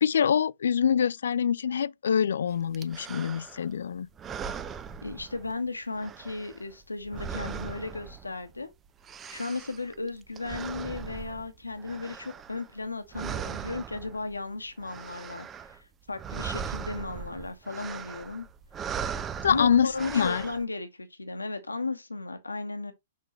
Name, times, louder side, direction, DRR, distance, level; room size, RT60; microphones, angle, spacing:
voice 1, 0.0-4.1 19.4-20.4, left 7 dB, 70° left, 0.3 m, -25 dB
sound 1, 2.7-3.7 4.1-5.7 5.9-8.6 8.9-12.9 13.1-14.4 14.7-15.8 16.1-20.6, right 7 dB, 20° right, 0.5 m, -39 dB
voice 2, 5.0-8.7 9.3-18.4 19.5-22.9, left 3 dB, 90° left, 1.1 m, -35 dB
6.7 x 4.6 x 3.1 m
figure-of-eight pair, 115°, 0 cm